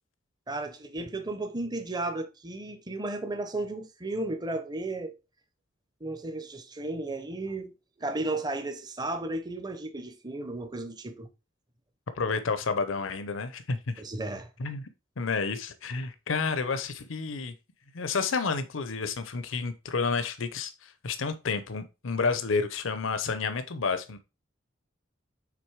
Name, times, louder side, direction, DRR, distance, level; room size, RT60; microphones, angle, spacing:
voice 1, 0.5-5.2 6.0-7.7 8.0-11.3 14.0-14.5, right 2 dB, 20° right, 0.7 m, -34 dB
voice 2, 12.2-13.9 14.6-14.9 15.2-17.5 17.9-24.2, left 4 dB, 85° left, 0.7 m, -30 dB
6.0 x 3.9 x 4.6 m
head